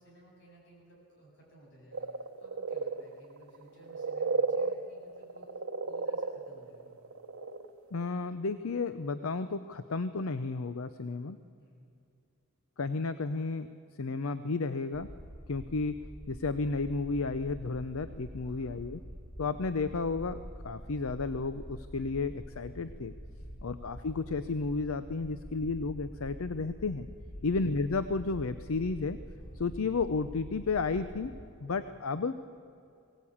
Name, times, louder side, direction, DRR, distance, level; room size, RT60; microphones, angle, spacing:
voice 1, 0.0-2.1 2.4-5.5 5.9-7.0 11.6-11.9 18.4-18.7 19.1-19.2 23.4-23.7 27.3-27.5 29.3-29.7 31.8-32.0, right 1 dB, 55° left, -3 dB, 7.8 m, -57 dB
sound 1, 1.9-7.7 8.0-8.1, right 4 dB, 80° right, 1.0 m, -34 dB
voice 2, 7.9-11.4 12.8-13.7 14.0-15.1 15.5-16.0 16.3-19.0 19.4-23.1 23.6-27.1 27.4-29.2 29.5-31.3 31.6-32.3, left 4 dB, 75° left, 12 dB, 0.6 m, -32 dB
sound 2, 14.9-31.4, equal, 5° left, 2.7 m, -46 dB
21.5 x 17.5 x 8.6 m, 2.6 s
head